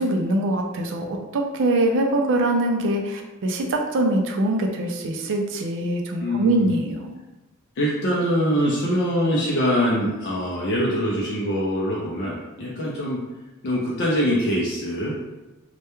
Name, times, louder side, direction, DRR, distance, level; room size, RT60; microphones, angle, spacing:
voice 1, 0.0-7.1, right 1 dB, 60° right, 2 dB, 0.4 m, -23 dB
voice 2, 6.2-6.7 7.8-13.2 13.6-15.1, equal, 55° left, -5 dB, 0.4 m, -23 dB
2.2 x 2.1 x 2.9 m, 1.1 s
head